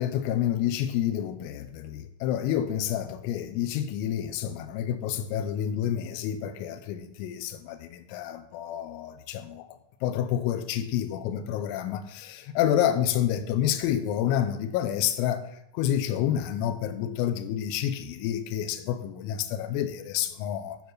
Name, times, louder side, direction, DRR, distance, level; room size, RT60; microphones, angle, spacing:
voice 1, 0.0-9.7 10.0-15.4 15.7-20.8, left 10 dB, 90° left, 3.4 m, -29 dB
12.0 x 6.9 x 3.9 m
omnidirectional pair, 5.9 m